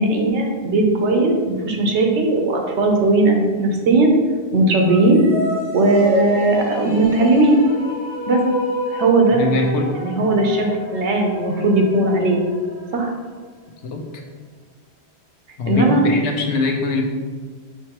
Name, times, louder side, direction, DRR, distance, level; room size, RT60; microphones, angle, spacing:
voice 1, 0.0-4.1 4.5-5.2 5.7-7.6 8.3-8.4 8.9-9.5 10.0-10.7 10.9-12.4 12.9-13.1 15.7-16.0, right 2 dB, 90° right, 2 dB, 1.0 m, -17 dB
sound 1, 4.8-13.3, equal, 55° right, 1.5 m, -29 dB
voice 2, 9.3-10.0 13.8-14.0 15.6-17.1, left 3 dB, 90° left, 2 dB, 1.0 m, -22 dB
5.9 x 3.0 x 2.9 m, 1.5 s
omnidirectional pair, 1.1 m